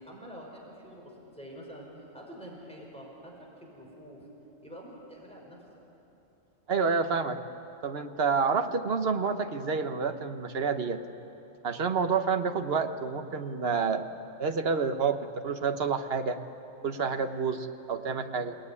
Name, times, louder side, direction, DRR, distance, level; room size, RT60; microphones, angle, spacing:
voice 1, 0.0-4.3 4.6-5.6, equal, 5° left, -2 dB, 5.0 m, -46 dB
voice 2, 6.7-7.4 7.8-11.0 11.6-14.0 14.4-16.4 16.8-18.6, right 5 dB, 50° right, 8 dB, 1.3 m, -29 dB
29.0 x 18.5 x 9.8 m, 3.0 s
omnidirectional pair, 1.4 m